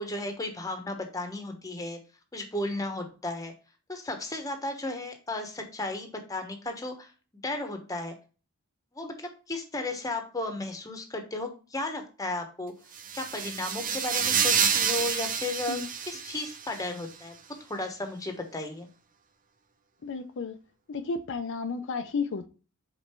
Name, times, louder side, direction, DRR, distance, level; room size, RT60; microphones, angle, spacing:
voice 1, 0.0-2.0 2.3-3.5 3.9-7.1 7.4-8.1 8.9-12.7 13.1-15.8 16.1-17.4 17.7-18.9, left 2 dB, 15° left, 5 dB, 1.1 m, -34 dB
sound 1, 12.9-16.8, right 7 dB, 40° right, 0.7 m, -28 dB
voice 2, 20.0-20.6 20.9-22.5, left 4 dB, 60° left, 7 dB, 0.5 m, -32 dB
5.2 x 4.1 x 4.4 m, 0.35 s
head